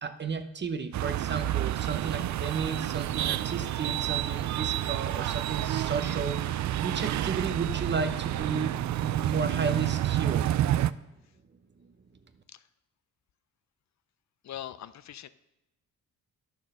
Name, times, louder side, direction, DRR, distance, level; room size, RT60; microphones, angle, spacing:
voice 1, 0.0-10.5 11.8-11.9, right 5 dB, 35° right, 9 dB, 0.8 m, -33 dB
sound 1, 0.9-10.9, right 13 dB, 60° right, 0.4 m, -29 dB
voice 2, 14.4-15.3, left 11 dB, 55° left, 14 dB, 0.5 m, -41 dB
10.5 x 6.4 x 6.5 m, 0.96 s
cardioid pair, 100°, 33 cm